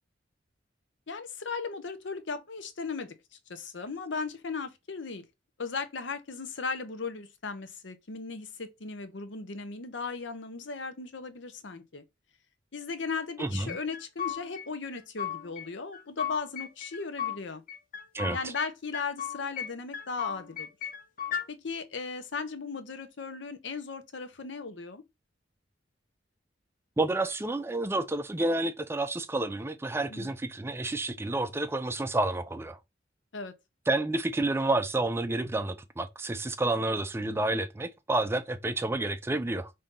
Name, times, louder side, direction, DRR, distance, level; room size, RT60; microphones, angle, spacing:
voice 1, 1.1-3.1 3.5-5.2 5.6-12.0 12.7-17.6 18.3-20.7 21.5-25.0 30.1-30.3 33.3-33.5, left 4 dB, 75° left, 0.8 m, -37 dB
voice 2, 13.4-13.8 18.1-18.5 27.0-32.8 33.9-39.7, right 2 dB, 15° right, 0.4 m, -30 dB
sound 1, 13.7-14.7 14.9-15.7 15.9-17.4 17.7-18.7 18.9-19.7 19.9-21.5, left 9 dB, 45° left, 0.9 m, -36 dB
5.2 x 2.8 x 3.6 m
head